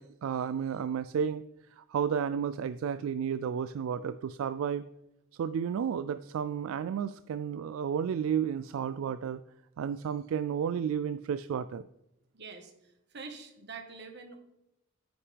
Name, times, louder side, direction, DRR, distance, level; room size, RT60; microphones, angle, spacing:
voice 1, 0.0-1.4 1.8-4.8 5.4-9.4 9.8-11.9, right 7 dB, 75° right, 13 dB, 0.3 m, -32 dB
voice 2, 12.3-14.4, right 4 dB, 55° right, 5 dB, 1.3 m, -46 dB
9.4 x 8.6 x 3.4 m, 0.87 s
head